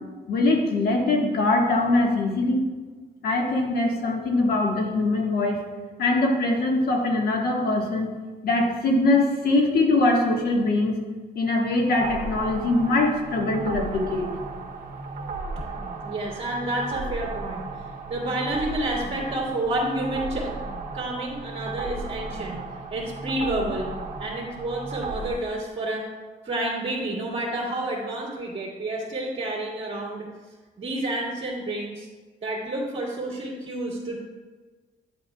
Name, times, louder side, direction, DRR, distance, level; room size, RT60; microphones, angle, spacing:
voice 1, 0.3-2.7 3.2-5.6 6.0-8.1 8.4-11.0 11.3-14.3, left 2 dB, 65° left, 1 dB, 1.5 m, -22 dB
sound 1, 11.9-25.3, right 3 dB, 60° right, 1.1 m, -35 dB
voice 2, 16.0-17.7 18.1-20.5 20.9-22.6 22.9-23.9 24.2-26.1 26.4-30.3 30.8-32.1 32.4-34.2, right 1 dB, 35° right, -9 dB, 2.2 m, -29 dB
11.0 x 7.7 x 2.3 m, 1.3 s
cardioid pair, 120°, 17 cm